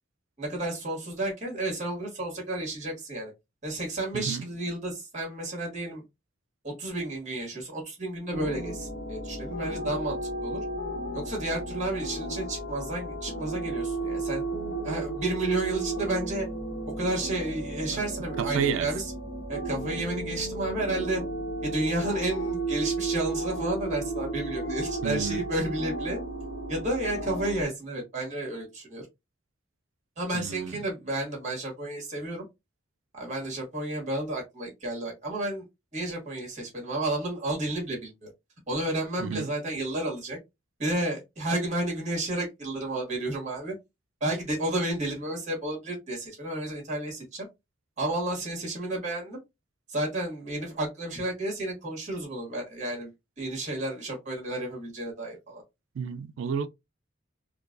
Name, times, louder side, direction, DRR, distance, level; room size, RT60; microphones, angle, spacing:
voice 1, 0.4-3.3 3.6-6.0 6.6-10.2 10.4-10.6 11.1-14.4 14.8-16.5 17.0-19.1 19.5-21.2 21.6-26.2 26.7-29.0 30.2-32.4 33.1-35.6 35.9-38.3 38.7-40.4 40.8-43.7 44.2-47.5 48.0-49.4 49.9-53.1 53.4-55.6, right 1 dB, 40° right, 1.8 m, -31 dB
sound 1, 8.3-27.6, right 2 dB, 55° left, 1.1 m, -34 dB
voice 2, 18.4-18.9 25.0-25.4 30.3-30.7 39.2-39.5 56.0-56.7, right 7 dB, 85° right, 0.3 m, -30 dB
4.4 x 2.3 x 2.4 m
head